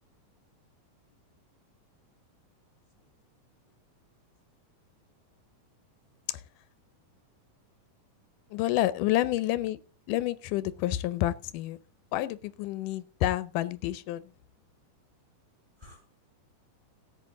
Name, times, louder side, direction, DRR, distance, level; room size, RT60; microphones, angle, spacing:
voice 1, 6.0-6.3 15.8-16.1, left 2 dB, 10° right, 2.7 m, -57 dB
voice 2, 8.5-9.8 10.1-11.8 12.1-14.2, left 14 dB, 90° left, 2.3 m, -29 dB
14.0 x 8.9 x 3.8 m
omnidirectional pair, 3.6 m